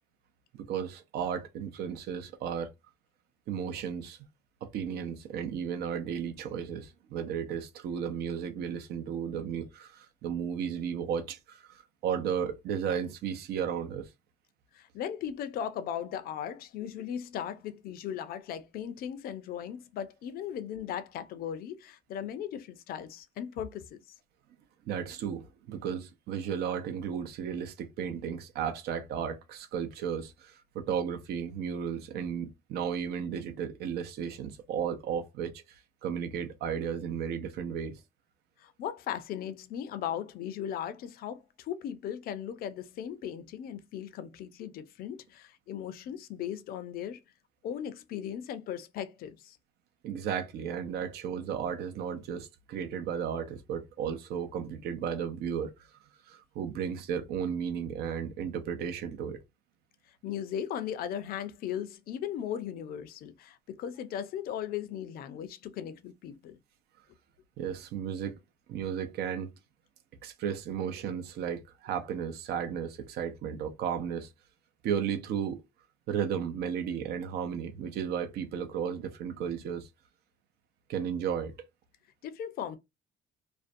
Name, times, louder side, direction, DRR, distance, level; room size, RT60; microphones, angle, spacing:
voice 1, 0.5-2.7 3.5-4.2 4.6-14.1 24.9-38.0 50.0-55.7 56.3-59.4 67.6-68.4 68.7-69.5 70.2-74.3 74.8-75.6 76.1-79.9 80.9-81.5, right 8 dB, 70° right, 0.6 m, -34 dB
voice 2, 14.7-24.0 38.6-47.2 47.6-49.6 60.2-66.6 82.2-82.8, left 9 dB, 60° left, 0.5 m, -37 dB
2.5 x 2.1 x 2.5 m
cardioid pair, 110°, 17 cm